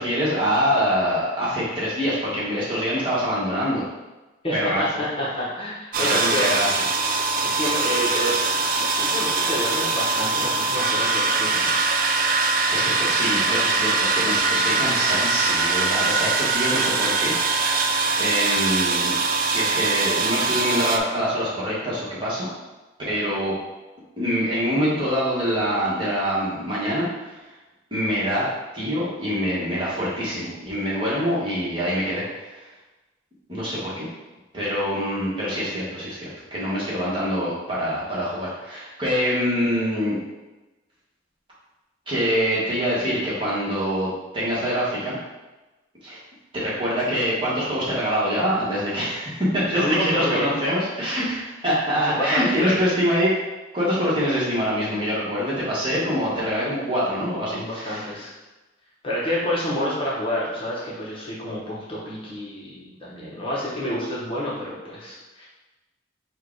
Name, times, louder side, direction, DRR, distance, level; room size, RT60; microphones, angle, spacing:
voice 1, 0.0-3.8 4.5-4.8 6.0-6.7 12.7-17.3 17.7-17.8 18.2-22.5 23.0-23.5 24.2-27.3 27.9-28.5 28.7-32.7 33.5-34.0 34.5-40.2 42.1-45.2 46.0-46.2 46.5-53.3 53.7-58.1, equal, 25° right, -8 dB, 1.3 m, -25 dB
voice 2, 4.4-6.5 7.4-8.4 9.0-11.7 49.7-50.5 52.1-52.8 57.5-58.3 59.0-65.5, left 1 dB, 25° left, -7 dB, 0.9 m, -28 dB
sound 1, 5.9-21.0, right 3 dB, 45° right, 0.3 m, -22 dB
4.8 x 2.3 x 4.5 m, 1.1 s
head